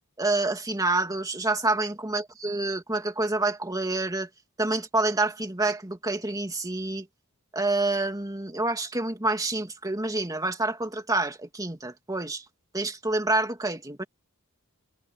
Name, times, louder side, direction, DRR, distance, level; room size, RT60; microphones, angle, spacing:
voice 1, 0.2-4.3 4.6-7.1 7.5-12.4 12.7-14.0, right 2 dB, 15° right, 2.5 m, -27 dB
head